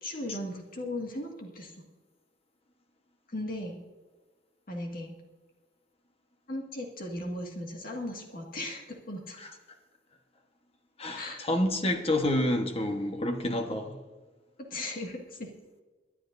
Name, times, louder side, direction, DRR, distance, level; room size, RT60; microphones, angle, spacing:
voice 1, 0.0-1.8 3.3-3.8 4.7-5.2 6.5-9.4 11.1-11.4 14.6-15.5, left 1 dB, 50° left, 0 dB, 1.9 m, -37 dB
voice 2, 11.0-14.0, left 1 dB, 35° left, 5 dB, 1.2 m, -29 dB
24.5 x 11.5 x 2.6 m, 1.3 s
head